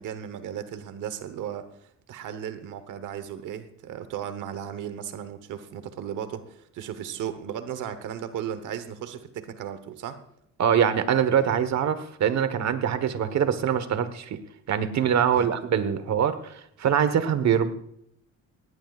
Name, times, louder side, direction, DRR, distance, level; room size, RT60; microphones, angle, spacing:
voice 1, 0.0-10.2 15.3-15.5, right 9 dB, 85° right, 11 dB, 1.2 m, -36 dB
voice 2, 10.6-14.4 14.7-17.7, right 8 dB, 65° right, 11 dB, 1.3 m, -23 dB
19.0 x 17.5 x 2.4 m, 0.73 s
cardioid pair, 90°, 30 cm